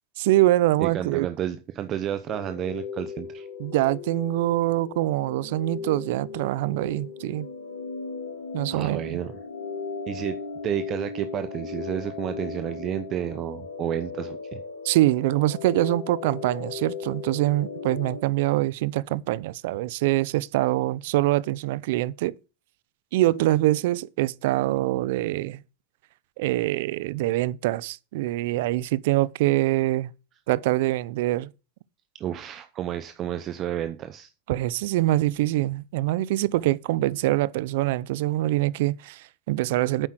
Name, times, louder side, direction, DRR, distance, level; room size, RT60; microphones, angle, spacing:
voice 1, 0.2-1.3 3.6-7.5 8.5-9.2 14.8-22.3 23.1-25.6 26.4-30.1 30.5-31.5 34.5-40.1, right 16 dB, 65° right, 0.6 m, -24 dB
voice 2, 0.8-3.5 8.7-9.4 10.1-10.4 10.6-14.6 32.2-34.3, right 10 dB, 35° right, 0.8 m, -31 dB
sound 1, 2.3-18.2, left 5 dB, 85° left, 4.6 m, -37 dB
9.2 x 7.7 x 5.9 m
supercardioid pair, 140°, 0 cm